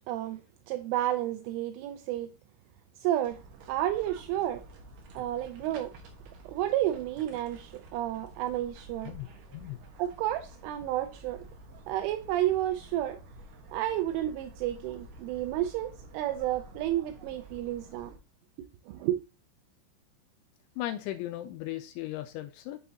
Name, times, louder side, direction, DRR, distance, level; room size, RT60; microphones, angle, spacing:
voice 1, 0.1-0.4 0.7-2.3 3.0-3.4 3.7-4.6 5.2-5.9 6.5-9.1 10.0-11.4 11.9-13.2 13.7-18.1 18.9-19.2, right 13 dB, 85° right, 3.0 m, -31 dB
sound 1, 3.2-18.2, right 2 dB, 65° right, 2.3 m, -50 dB
voice 2, 9.0-9.8 20.8-22.8, left 14 dB, 85° left, 2.8 m, -37 dB
9.3 x 6.7 x 2.8 m
omnidirectional pair, 5.7 m